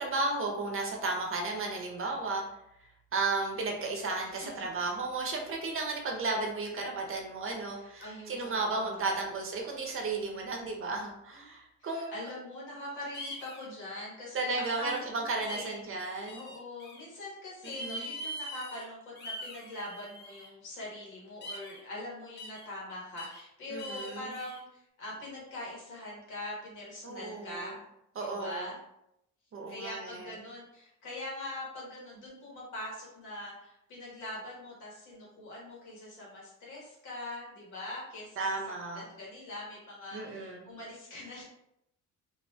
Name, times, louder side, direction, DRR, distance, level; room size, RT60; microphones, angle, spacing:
voice 1, 0.0-2.4 3.1-12.3 14.3-16.5 17.6-18.0 23.7-24.3 27.0-27.8 28.2-28.7 29.5-30.4 38.4-39.0 40.1-40.7, right 3 dB, 45° right, 1 dB, 0.7 m, -34 dB
voice 2, 7.7-9.0 11.9-15.2 15.5-15.8 16.3-27.8 28.2-28.8 29.7-38.4 38.9-41.4, left 1 dB, 85° left, -5 dB, 1.2 m, -43 dB
sound 1, 13.1-13.7 14.6-15.1 15.5-15.8 16.3-17.0 17.6-18.9 19.2-20.5 21.4-21.8 22.4-22.7 23.2-23.4 23.8-24.6, equal, 35° left, 0.6 m, -42 dB
2.5 x 2.1 x 2.7 m, 0.79 s
cardioid pair, 90°, 30 cm